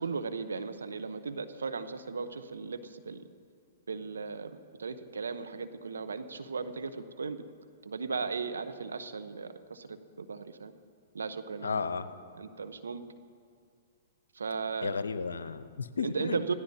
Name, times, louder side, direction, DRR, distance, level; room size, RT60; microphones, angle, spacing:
voice 1, 0.0-3.2 3.9-7.4 7.8-10.7 11.1-11.8 12.3-13.0 14.4-14.9 16.0-16.5, right 5 dB, 85° right, 9 dB, 1.0 m, -36 dB
voice 2, 11.6-12.1 14.8-16.5, left 5 dB, 85° left, 13 dB, 0.7 m, -33 dB
25.0 x 16.0 x 2.8 m, 2.2 s
hypercardioid pair, 120°, 0 cm